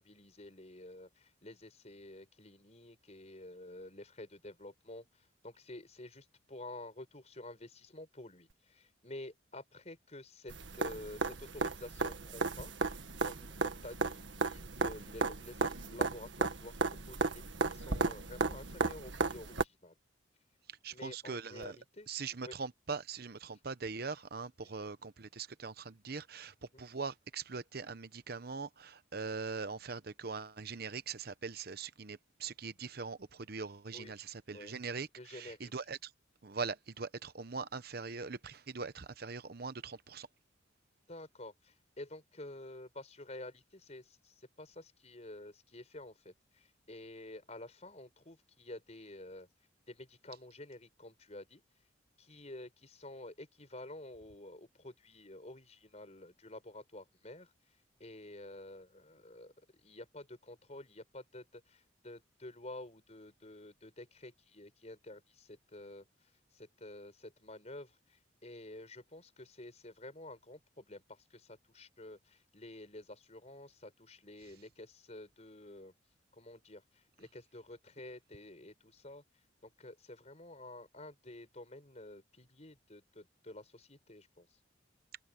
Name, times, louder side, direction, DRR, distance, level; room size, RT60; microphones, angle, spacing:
voice 1, 0.0-12.7 13.2-16.7 17.1-17.4 17.7-19.9 20.9-22.1 22.4-22.5 24.8-24.9 26.7-26.8 33.9-34.1 34.5-34.7 35.2-35.7 41.1-49.5 49.9-51.6 52.2-57.5 58.0-59.5 59.8-66.0 66.5-75.9 76.3-79.2 79.6-84.5, left 1 dB, 35° left, 5.3 m, -50 dB
sound 1, 10.5-19.6 21.6-21.7, right 3 dB, 80° right, 1.7 m, -35 dB
voice 2, 20.7-21.8 22.1-36.1 36.4-40.3, right 4 dB, 55° right, 0.9 m, -42 dB
head